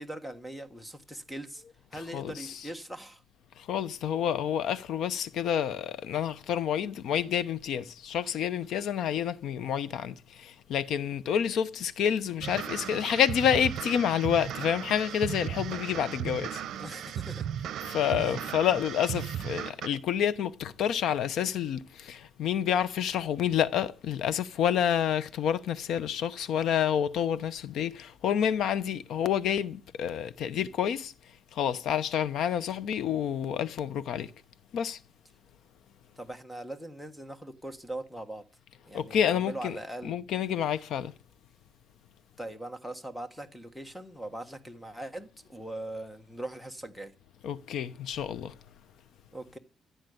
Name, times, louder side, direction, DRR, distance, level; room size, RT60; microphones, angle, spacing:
voice 1, 0.0-1.6 1.9-3.2 16.8-17.5 18.0-18.4 36.2-38.4 38.8-40.2 42.4-47.1 49.3-49.6, right 1 dB, 5° left, 1.5 m, -41 dB
voice 2, 3.7-16.6 17.9-31.1 31.6-34.3 34.7-35.0 38.9-39.8 40.0-41.1 47.4-48.5, left 9 dB, 80° left, 0.9 m, -28 dB
sound 1, 12.4-19.9, right 10 dB, 75° right, 0.8 m, -36 dB
15.0 x 8.2 x 8.1 m
cardioid pair, 145°, 0 cm